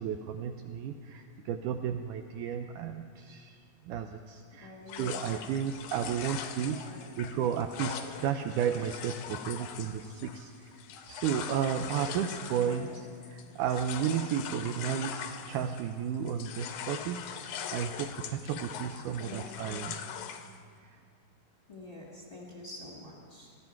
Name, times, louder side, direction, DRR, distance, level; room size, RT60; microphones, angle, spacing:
voice 1, 0.0-3.6 3.9-6.8 7.2-10.7 11.1-20.0 20.8-21.0, right 8 dB, 85° right, 6 dB, 1.8 m, -33 dB
voice 2, 4.6-5.3 6.7-7.1 12.6-13.0 19.2-20.2 21.7-23.6, left 1 dB, 15° left, -3 dB, 1.3 m, -47 dB
sound 1, 4.9-16.0 16.3-20.6, left 8 dB, 75° left, 1.9 m, -41 dB
18.0 x 14.0 x 4.6 m, 2.3 s
omnidirectional pair, 4.2 m